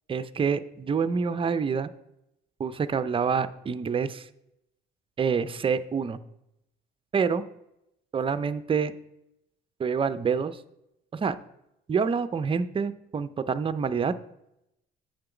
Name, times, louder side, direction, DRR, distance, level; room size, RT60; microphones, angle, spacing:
voice 1, 0.1-1.9 2.6-4.3 5.2-6.2 7.1-7.4 8.1-8.9 9.8-10.6 11.1-11.4 11.9-14.1, right 6 dB, 25° right, 13 dB, 0.5 m, -27 dB
8.7 x 3.8 x 7.0 m, 0.83 s
cardioid pair, 105°, 21 cm